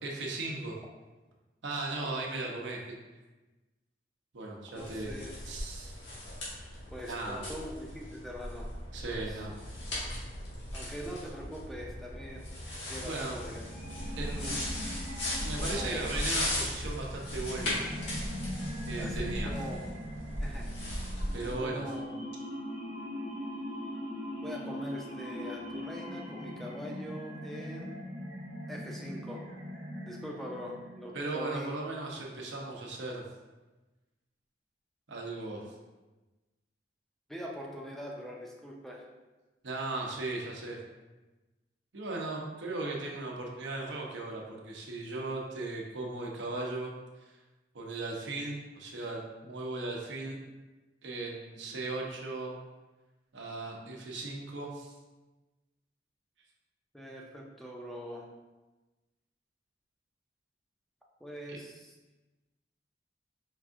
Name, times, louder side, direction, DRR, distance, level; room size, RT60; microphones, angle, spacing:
voice 1, 0.0-0.8 1.6-2.8 4.3-5.2 5.5-6.0 6.5-6.7 7.1-7.4 8.9-9.5 13.0-13.3 14.2-14.6 15.4-17.8 18.8-19.5 21.3-21.8 31.1-33.2 35.1-35.6 39.6-40.8 41.9-46.9 47.2-47.3 47.7-50.4 51.0-52.6 53.3-54.9 61.5-61.6, right 2 dB, 80° right, -1 dB, 0.7 m, -37 dB
voice 2, 2.0-2.5 4.7-5.4 6.9-8.7 9.1-9.4 10.7-12.4 12.9-13.6 14.4-14.6 15.5-16.2 17.9-18.0 19.0-19.8 20.4-20.7 21.6-22.0 24.4-27.9 28.7-29.4 30.0-31.7 37.3-39.1 56.9-58.3 61.2-61.9, equal, ahead, -2 dB, 0.5 m, -43 dB
sound 1, 4.8-21.5, left 1 dB, 80° left, 1.5 m, -37 dB
sound 2, 13.3-31.2, equal, 45° right, 0.9 m, -41 dB
4.7 x 2.5 x 3.6 m, 1.2 s
head